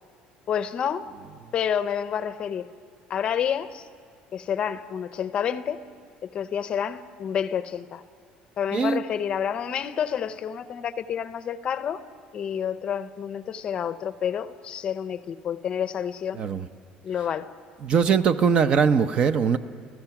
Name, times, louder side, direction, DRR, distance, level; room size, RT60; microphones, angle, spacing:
voice 1, 0.5-1.1 1.5-2.7 3.1-3.9 4.3-5.8 6.2-8.0 8.6-12.0 12.3-16.4 17.0-17.5, left 8 dB, 35° left, 13 dB, 0.7 m, -29 dB
voice 2, 16.3-16.7 17.8-19.6, right 6 dB, 35° right, 11 dB, 0.7 m, -21 dB
29.5 x 15.5 x 5.9 m, 2.2 s
cardioid pair, 165°, 3 cm